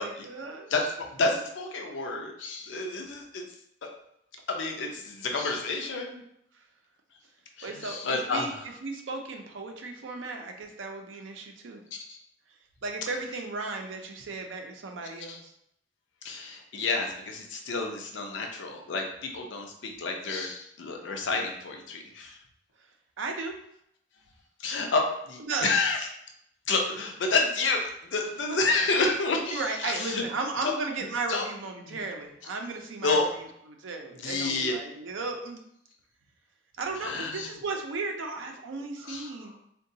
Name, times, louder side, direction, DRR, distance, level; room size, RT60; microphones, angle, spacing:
voice 1, 0.0-0.7 6.5-6.6 7.6-11.8 12.8-15.5 23.2-23.5 25.4-25.8 28.5-28.9 29.5-35.6 36.8-39.5, right 3 dB, 90° right, 3 dB, 0.5 m, -35 dB
voice 2, 0.7-3.4 3.8-3.9 4.5-6.2 7.6-8.6 11.9-12.2 15.3-15.4 16.2-22.4 24.6-26.0 26.7-30.2 30.6-30.7 31.3-31.4 31.9-32.0 33.0-33.3 34.2-34.7 37.0-37.5 39.0-39.3, left 3 dB, 75° left, 2 dB, 0.5 m, -29 dB
3.7 x 2.2 x 2.7 m, 0.75 s
head